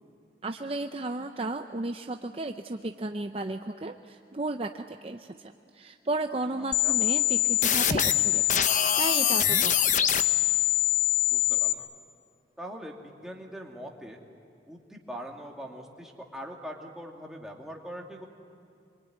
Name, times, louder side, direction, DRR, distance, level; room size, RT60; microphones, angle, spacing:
voice 1, 0.4-8.7 9.0-10.1, right 2 dB, 30° right, 6 dB, 0.6 m, -34 dB
sound 1, 6.7-11.7, left 12 dB, 45° left, 0.8 m, -23 dB
voice 2, 11.3-11.9 12.6-14.2 14.7-18.3, equal, 5° right, -1 dB, 2.4 m, -42 dB
26.5 x 23.0 x 9.4 m, 2.5 s
head